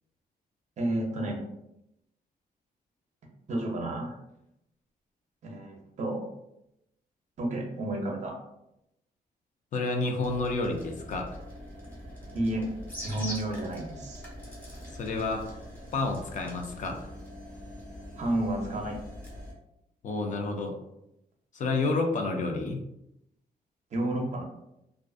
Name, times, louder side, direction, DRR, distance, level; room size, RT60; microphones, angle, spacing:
voice 1, 0.8-1.4 3.5-4.2 5.4-6.3 7.4-8.3 12.3-12.7 13.0-14.2 18.2-19.0 23.9-24.4, right 1 dB, 45° right, 1 dB, 0.6 m, -31 dB
voice 2, 9.7-11.4 15.0-15.4 15.9-17.0 20.0-20.7 21.5-22.8, left 3 dB, 50° left, 3 dB, 0.4 m, -29 dB
sound 1, 10.2-19.5, equal, 10° left, 0.8 m, -43 dB
2.4 x 2.3 x 2.4 m, 0.84 s
wide cardioid pair, 145°, 16 cm